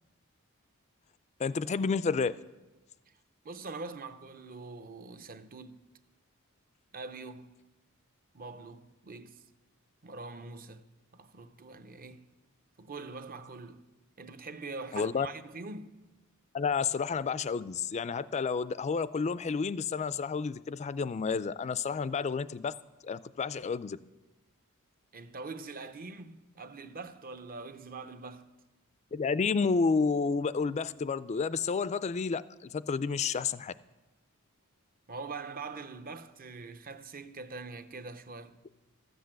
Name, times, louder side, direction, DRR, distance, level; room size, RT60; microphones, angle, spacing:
voice 1, 1.4-2.4 14.9-15.3 16.5-22.7 23.0-24.0 29.1-33.7, left 5 dB, 30° left, 0.3 m, -30 dB
voice 2, 3.4-5.8 6.9-7.6 8.3-9.4 10.0-12.3 12.8-13.9 14.2-15.9 25.1-28.5 35.1-38.6, right 3 dB, 40° right, 0.7 m, -43 dB
13.5 x 8.1 x 7.5 m
head